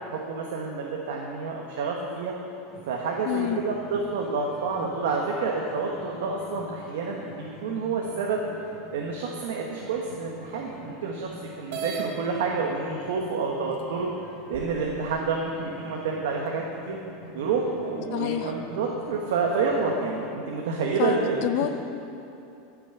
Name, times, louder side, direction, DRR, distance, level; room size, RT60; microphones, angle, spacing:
voice 1, 0.0-2.3 2.9-8.4 8.9-14.1 14.5-17.0 17.3-21.6, right 4 dB, 85° right, -1 dB, 1.2 m, -29 dB
sound 1, 2.7-20.3, right 1 dB, 20° left, 1.8 m, -46 dB
voice 2, 3.3-3.6 18.1-18.5 21.0-21.7, left 11 dB, 55° left, 9 dB, 0.7 m, -27 dB
sound 2, 11.7-12.1 13.1-13.2 13.8-13.9 14.5-15.2, right 7 dB, 60° right, 1.3 m, -34 dB
12.5 x 6.1 x 7.2 m, 2.7 s
supercardioid pair, 160°, 0 cm